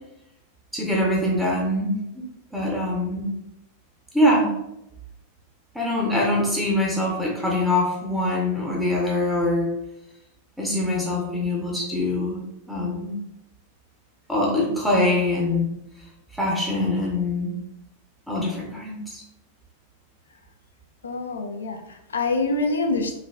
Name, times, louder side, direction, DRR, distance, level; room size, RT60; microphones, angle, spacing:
voice 1, 0.7-2.2 2.5-3.3 4.1-4.5 5.7-9.7 10.6-12.4 12.7-13.2 14.3-15.7 16.3-17.5 18.3-19.2, left 1 dB, ahead, -3 dB, 0.6 m, -23 dB
voice 2, 21.0-23.2, left 3 dB, 70° left, 5 dB, 0.3 m, -26 dB
3.3 x 2.3 x 2.2 m, 0.87 s
figure-of-eight pair, 90°, 0 cm